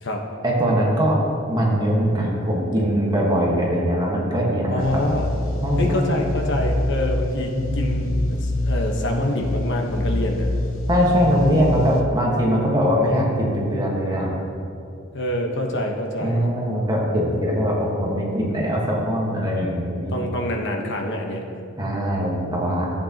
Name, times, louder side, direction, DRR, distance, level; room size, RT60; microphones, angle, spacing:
voice 1, 0.4-1.2 1.5-5.0 5.6-6.2 7.5-8.0 10.9-14.3 16.2-20.2 21.8-22.9, equal, 20° right, -3 dB, 1.4 m, -21 dB
voice 2, 4.7-5.3 5.8-10.5 15.1-16.4 20.1-21.4, left 1 dB, 60° left, 1 dB, 1.2 m, -26 dB
sound 1, 4.8-12.0, left 1 dB, 85° left, 0.9 m, -25 dB
14.5 x 8.3 x 2.9 m, 2.6 s
head